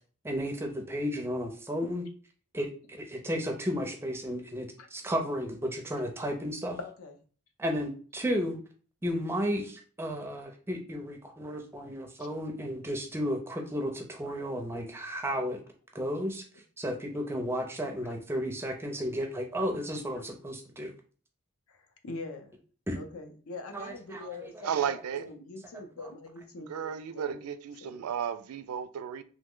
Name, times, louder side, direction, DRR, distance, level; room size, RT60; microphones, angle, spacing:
voice 1, 0.2-2.0 2.5-6.8 7.6-8.6 9.0-15.6 15.9-16.4 16.8-20.9 22.9-23.0 23.7-24.5, equal, 10° right, 0.4 m, -33 dB
voice 2, 6.8-7.2 18.0-18.1 21.7-22.6 22.9-27.4 27.8-28.2, left 2 dB, 75° left, 0.6 m, -43 dB
voice 3, 24.6-25.3 26.7-29.2, right 8 dB, 80° right, 0.3 m, -33 dB
3.0 x 2.0 x 3.6 m
head